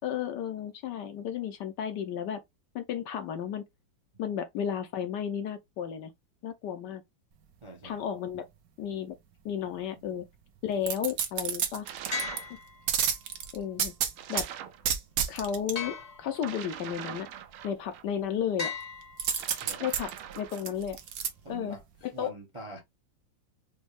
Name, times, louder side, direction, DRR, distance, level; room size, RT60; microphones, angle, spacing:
voice 1, 0.0-2.4 2.7-3.6 4.2-6.1 6.4-7.0 7.8-8.5 8.8-9.2 9.4-10.2 10.6-11.9 12.5-12.6 13.5-13.9 14.3-14.5 15.3-17.3 17.6-18.7 19.8-21.0 21.5-21.8 22.0-22.3, left 8 dB, 70° left, 1.1 m, -33 dB
voice 2, 7.6-8.0 19.4-19.8 21.4-22.8, right 1 dB, 30° right, 0.5 m, -45 dB
sound 1, 10.8-12.4 12.9-14.5 14.8-15.7 19.2-21.3 21.7-21.8, right 8 dB, 60° right, 1.0 m, -30 dB
sound 2, 11.8-12.5 14.2-14.8 16.3-18.0 19.3-20.7, right 10 dB, 85° right, 1.5 m, -42 dB
sound 3, 12.1-13.4 15.7-16.8 18.6-19.8, left 5 dB, 50° left, 0.4 m, -38 dB
5.2 x 2.2 x 3.1 m
omnidirectional pair, 2.2 m